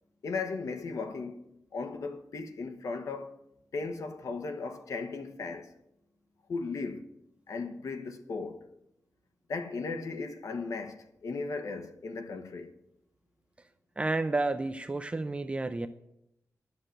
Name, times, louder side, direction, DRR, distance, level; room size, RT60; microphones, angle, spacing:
voice 1, 0.2-1.4 1.7-3.3 3.7-5.7 6.5-7.0 7.5-8.6 9.5-12.7, left 4 dB, 70° left, 1.2 m, -36 dB
voice 2, 14.0-15.9, right 2 dB, 20° right, 0.5 m, -30 dB
11.0 x 6.6 x 9.0 m
wide cardioid pair, 145°, 6 cm